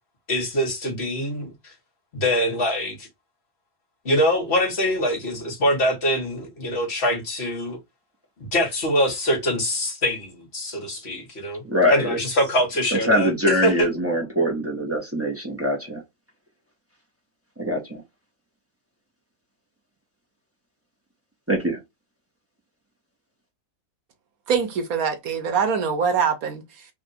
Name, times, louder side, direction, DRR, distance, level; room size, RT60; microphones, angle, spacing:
voice 1, 0.3-1.7 2.1-3.1 4.0-7.8 8.5-11.6 11.9-13.9, equal, 45° left, 1.6 m, -24 dB
voice 2, 11.6-12.2 12.9-16.0 17.6-18.0 21.5-21.8, equal, 10° right, 0.9 m, -23 dB
voice 3, 24.5-26.9, right 6 dB, 75° right, 1.3 m, -24 dB
3.4 x 2.5 x 4.1 m
omnidirectional pair, 1.5 m